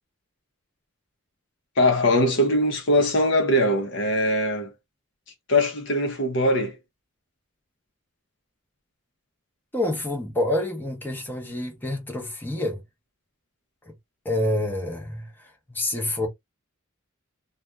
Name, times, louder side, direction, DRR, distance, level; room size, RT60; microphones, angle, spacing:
voice 1, 1.8-4.7 5.5-6.8, left 1 dB, 55° left, 0.7 m, -21 dB
voice 2, 9.7-12.8 13.8-13.9 14.2-16.3, left 1 dB, 10° left, 0.7 m, -28 dB
2.4 x 2.2 x 3.0 m
head